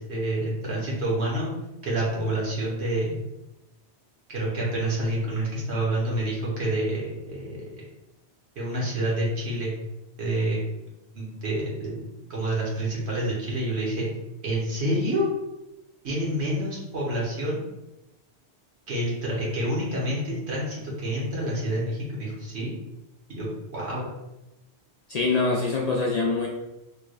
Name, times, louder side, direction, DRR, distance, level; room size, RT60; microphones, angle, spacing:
voice 1, 0.0-1.5 1.8-3.2 4.3-7.6 8.6-9.7 10.2-10.6 11.1-12.0 12.3-14.1 14.4-15.3 16.0-17.6 18.9-22.7 23.3-23.5 23.7-24.1, right 1 dB, 80° right, -5 dB, 1.4 m, -28 dB
voice 2, 25.1-26.5, left 3 dB, 55° left, -2 dB, 0.4 m, -24 dB
3.3 x 3.2 x 2.3 m, 0.96 s
omnidirectional pair, 1.1 m